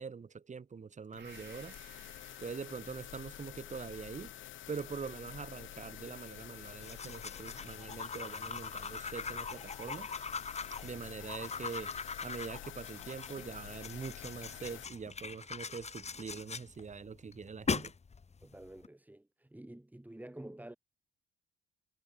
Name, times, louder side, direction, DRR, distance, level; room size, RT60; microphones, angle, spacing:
voice 1, 0.0-1.8 2.4-4.3 4.7-10.1 10.8-11.9 12.2-17.9, right 5 dB, 35° right, 4.8 m, -43 dB
sound 1, 1.1-14.8, left 13 dB, 80° left, 4.3 m, -49 dB
Gong, 1.2-8.8 9.2-9.3, right 9 dB, 60° right, 7.6 m, -64 dB
sound 2, 6.8-18.9, left 5 dB, 35° left, 3.0 m, -42 dB
voice 2, 18.4-20.8, right 1 dB, 10° right, 6.4 m, -49 dB
cardioid pair, 90°, 20 cm